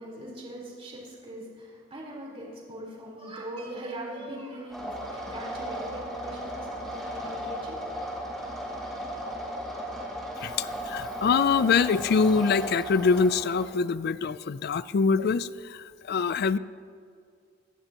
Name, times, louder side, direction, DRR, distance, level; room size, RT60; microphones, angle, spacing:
voice 1, 0.0-7.8, right 1 dB, 30° right, -4 dB, 3.9 m, -41 dB
sound 1, 4.7-13.6, equal, ahead, 3.8 m, -36 dB
voice 2, 10.4-16.6, left 5 dB, 55° left, 16 dB, 0.4 m, -24 dB
26.0 x 11.0 x 2.9 m, 2.2 s
head